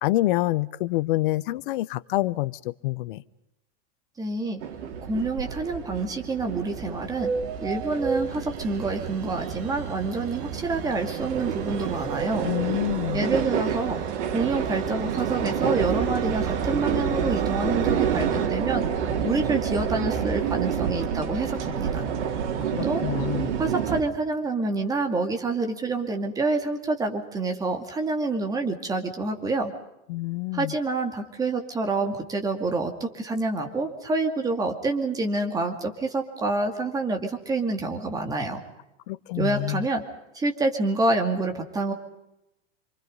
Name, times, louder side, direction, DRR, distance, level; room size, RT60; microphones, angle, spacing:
voice 1, 0.0-3.2 12.4-13.2 22.7-23.5 30.1-30.7 39.1-39.9, left 17 dB, 50° left, 18 dB, 0.8 m, -27 dB
voice 2, 4.2-4.6 5.0-7.3 7.6-12.5 13.1-14.0 14.3-18.9 19.2-22.1 22.8-23.0 23.6-29.7 30.5-38.6 39.4-40.0 40.3-41.9, right 3 dB, 10° right, 4 dB, 2.4 m, -27 dB
sound 1, 4.6-24.0, right 7 dB, 80° right, 4.1 m, -28 dB
sound 2, 6.9-18.5, right 8 dB, 50° right, 2.5 m, -36 dB
27.5 x 25.5 x 5.4 m, 0.88 s
supercardioid pair, 170°, 35 cm